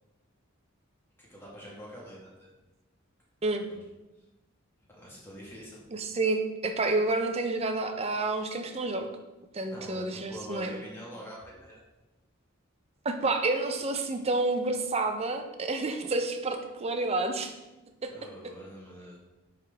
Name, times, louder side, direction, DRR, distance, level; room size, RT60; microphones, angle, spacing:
voice 1, 1.2-2.5 3.6-3.8 4.9-5.8 9.7-11.8 18.1-19.2, equal, 10° left, -5 dB, 1.6 m, -45 dB
voice 2, 5.9-9.1 9.5-10.8 13.0-17.5 18.0-18.1, right 2 dB, 30° right, 6 dB, 0.6 m, -29 dB
9.2 x 3.6 x 3.4 m, 1.1 s
head